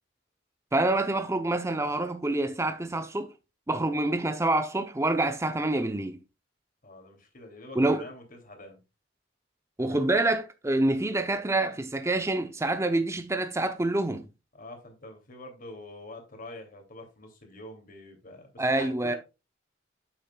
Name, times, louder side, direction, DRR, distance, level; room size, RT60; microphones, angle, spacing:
voice 1, 0.7-3.3 3.7-6.2 7.8-8.0 9.8-14.3 18.6-19.1, right 2 dB, 15° right, 0.7 m, -27 dB
voice 2, 6.8-8.8 14.5-19.2, left 2 dB, 50° left, 2.8 m, -45 dB
8.6 x 8.3 x 2.3 m
head